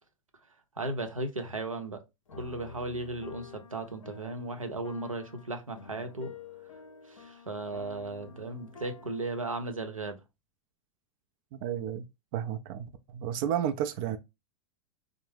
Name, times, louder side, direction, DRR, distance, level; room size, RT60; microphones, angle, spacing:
voice 1, 0.8-2.0 2.3-6.3 7.1-10.2, right 2 dB, 90° right, 0.7 m, -36 dB
sound 1, 2.3-9.7, left 4 dB, 70° left, 0.6 m, -49 dB
voice 2, 11.5-12.1 12.3-14.2, right 10 dB, 45° right, 0.4 m, -32 dB
3.5 x 2.0 x 3.1 m
figure-of-eight pair, 95°, 17 cm